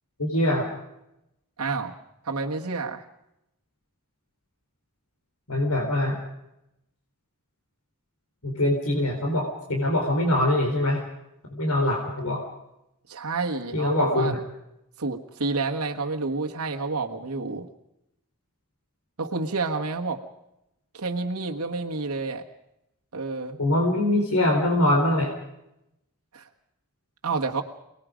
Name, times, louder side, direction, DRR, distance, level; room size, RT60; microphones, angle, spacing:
voice 1, 0.2-0.7 5.5-6.2 8.4-11.0 11.5-12.4 13.7-14.4 23.6-25.3, left 1 dB, 90° left, 1 dB, 4.1 m, -23 dB
voice 2, 1.6-2.0 2.2-3.0 13.1-14.3 15.0-17.7 19.2-20.2 20.9-22.4 23.1-23.6 26.3-26.5 27.2-27.6, right 3 dB, 80° right, 2 dB, 1.5 m, -29 dB
29.0 x 20.0 x 5.1 m, 0.85 s
head